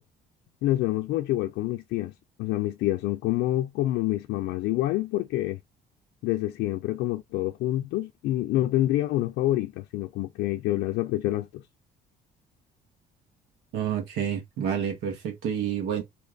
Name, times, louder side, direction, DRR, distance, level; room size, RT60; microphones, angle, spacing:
voice 1, 0.6-2.1 2.4-5.6 6.2-11.6, left 15 dB, 80° left, 0.4 m, -27 dB
voice 2, 13.7-16.0, right 8 dB, 90° right, 1.3 m, -29 dB
2.9 x 2.4 x 3.2 m
cardioid pair, 110°, 17 cm